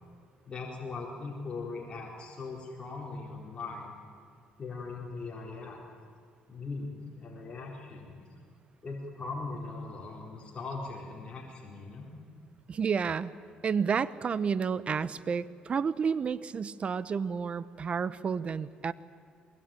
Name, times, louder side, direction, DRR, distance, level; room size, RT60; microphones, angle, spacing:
voice 1, 0.5-3.9 4.6-5.8 6.5-8.3 8.8-12.1, left 3 dB, 35° left, -2 dB, 4.2 m, -40 dB
voice 2, 12.7-13.3 13.6-18.9, right 6 dB, 40° right, 17 dB, 0.9 m, -30 dB
22.5 x 20.5 x 9.1 m, 2.2 s
cardioid pair, 95°, 3 cm